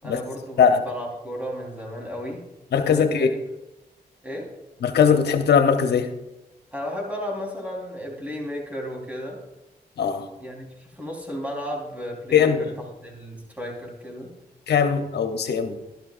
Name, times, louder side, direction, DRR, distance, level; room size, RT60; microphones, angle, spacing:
voice 1, 0.0-2.4 2.8-3.4 4.2-4.5 6.7-9.4 10.4-12.7 13.0-14.3, equal, 10° right, -1 dB, 4.2 m, -34 dB
voice 2, 2.7-3.3 4.8-6.1 10.0-10.3 12.3-12.7 14.7-15.8, left 7 dB, 85° left, 7 dB, 0.9 m, -20 dB
12.0 x 12.0 x 2.6 m, 0.95 s
cardioid pair, 55°, 17 cm